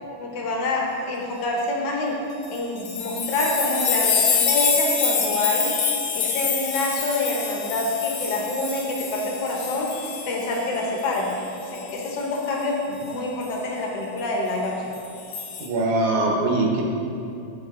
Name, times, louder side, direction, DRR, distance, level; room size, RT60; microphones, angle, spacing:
voice 1, 0.2-2.2 2.5-5.7 6.1-14.9, left 2 dB, 65° left, -1 dB, 1.6 m, -26 dB
sound 1, 2.4-10.8 11.1-12.2 13.4-13.5 14.9-15.7, left 6 dB, 85° left, 2.3 m, -26 dB
voice 2, 15.6-16.8, right 2 dB, 75° right, -1 dB, 2.3 m, -22 dB
12.0 x 4.1 x 3.7 m, 2.7 s
omnidirectional pair, 3.5 m